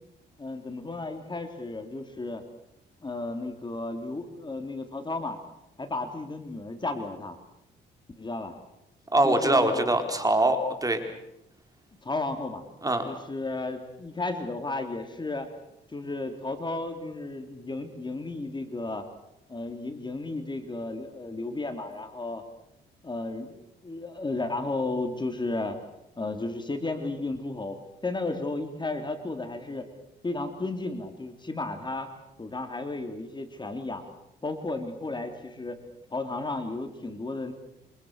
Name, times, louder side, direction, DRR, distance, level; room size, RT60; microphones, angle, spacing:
voice 1, 0.4-2.4 3.0-5.4 5.8-7.4 8.2-8.5 9.2-9.8 12.0-12.6 13.0-15.5 15.9-19.0 19.5-22.4 23.0-25.8 26.2-27.8 28.0-29.9 30.2-32.1 32.4-34.0 34.4-35.8 36.1-37.5, left 2 dB, 20° left, 6 dB, 3.3 m, -33 dB
voice 2, 9.1-11.0 12.8-13.0, right 1 dB, 20° right, 6 dB, 4.3 m, -23 dB
28.0 x 26.0 x 6.7 m, 0.83 s
cardioid pair, 90°, 20 cm